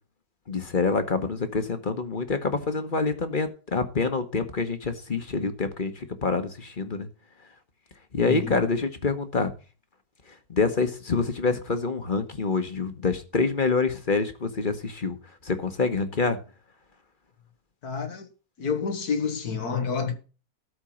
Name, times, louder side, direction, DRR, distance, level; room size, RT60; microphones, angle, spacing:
voice 1, 0.5-7.1 8.1-9.5 10.5-15.2 15.4-16.4, left 4 dB, 35° left, 1.3 m, -26 dB
voice 2, 8.2-8.6 17.8-18.3 18.6-20.1, left 5 dB, 85° left, 2.1 m, -29 dB
13.0 x 4.5 x 8.6 m
omnidirectional pair, 1.6 m